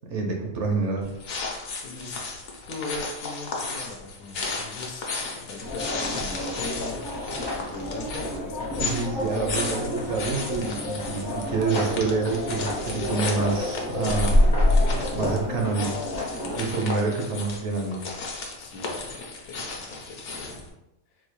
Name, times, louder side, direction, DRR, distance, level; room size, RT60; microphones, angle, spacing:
voice 1, 0.1-1.1 8.8-9.8 10.1-16.0 16.3-18.0, right 4 dB, 65° right, 1 dB, 0.9 m, -27 dB
sound 1, 1.0-20.7, left 3 dB, 60° left, 1.0 m, -35 dB
voice 2, 1.8-2.2 2.7-5.1 5.4-7.0 7.6-9.8 16.7-17.1 18.6-20.7, left 3 dB, 80° left, 3 dB, 1.1 m, -39 dB
sound 2, 5.6-16.6, left 1 dB, 25° left, 0.5 m, -27 dB
4.1 x 2.3 x 3.0 m, 0.90 s
omnidirectional pair, 1.5 m